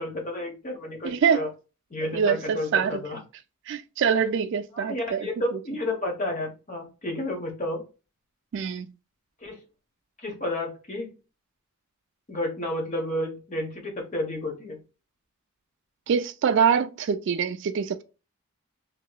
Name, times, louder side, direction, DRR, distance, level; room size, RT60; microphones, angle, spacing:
voice 1, 0.0-1.5 1.9-3.2 4.7-7.8 9.4-9.6 10.2-11.1 12.3-14.8, left 1 dB, 35° left, 1.0 m, -31 dB
voice 2, 1.0-1.4 2.1-3.0 3.7-5.3 8.5-8.9 16.1-18.0, right 7 dB, 55° right, 0.3 m, -24 dB
2.9 x 2.8 x 2.2 m
head